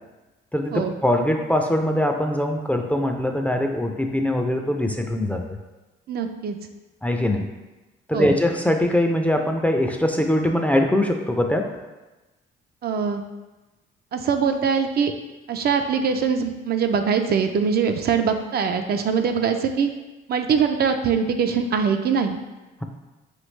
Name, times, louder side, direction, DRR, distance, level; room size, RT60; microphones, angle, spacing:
voice 1, 0.5-5.4 7.0-7.4 8.1-11.7, left 1 dB, 5° left, 3 dB, 0.4 m, -22 dB
voice 2, 6.1-6.6 8.1-8.3 12.8-13.2 14.1-15.1 15.5-19.9 20.3-22.4, right 6 dB, 55° right, 6 dB, 0.4 m, -22 dB
4.5 x 3.2 x 3.1 m, 1.1 s
cardioid pair, 90°, 20 cm